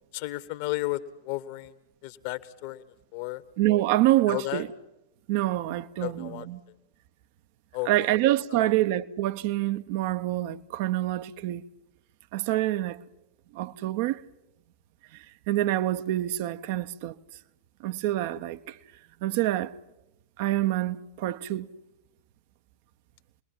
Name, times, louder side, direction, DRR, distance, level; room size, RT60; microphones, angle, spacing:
voice 1, 0.1-1.7 2.0-2.8 3.1-3.4 4.3-4.6 6.0-6.5 7.7-8.1 8.5-8.7, left 18 dB, 50° left, 1.4 m, -33 dB
voice 2, 3.6-4.7 5.3-6.6 7.8-11.6 12.3-13.0 13.5-14.2 15.1-17.2 17.8-18.8 19.2-19.7 20.4-21.7, right 15 dB, 50° right, 1.0 m, -26 dB
29.0 x 21.5 x 7.6 m
figure-of-eight pair, 90°, 0 cm